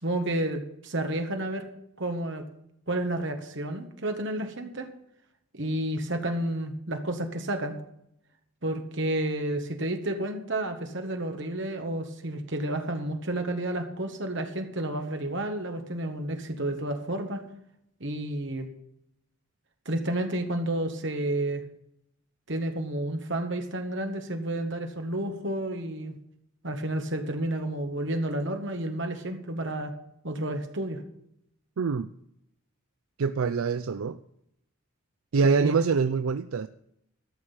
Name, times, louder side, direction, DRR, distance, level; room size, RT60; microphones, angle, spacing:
voice 1, 0.0-1.7 2.0-2.4 2.9-4.9 5.5-7.8 8.6-17.4 18.0-18.7 19.8-21.6 22.5-26.2 26.6-29.9 30.2-31.0 35.4-35.8, right 1 dB, 60° right, 5 dB, 1.7 m, -31 dB
voice 2, 31.8-32.1 33.2-34.2 35.3-36.7, right 5 dB, 80° right, 12 dB, 0.5 m, -25 dB
13.0 x 6.4 x 8.8 m, 0.76 s
head